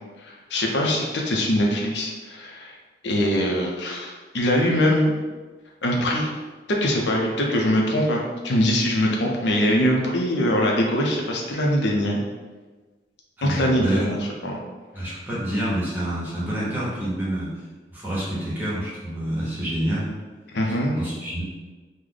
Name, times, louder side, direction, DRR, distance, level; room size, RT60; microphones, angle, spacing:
voice 1, 0.3-2.7 3.0-5.2 5.8-6.3 6.7-12.2 13.4-14.6 20.5-21.0, equal, 80° left, 0 dB, 0.5 m, -22 dB
voice 2, 13.4-14.1 14.9-17.5 17.9-20.1 21.0-21.4, right 1 dB, 10° right, -8 dB, 1.0 m, -27 dB
3.2 x 2.1 x 3.8 m, 1.3 s
head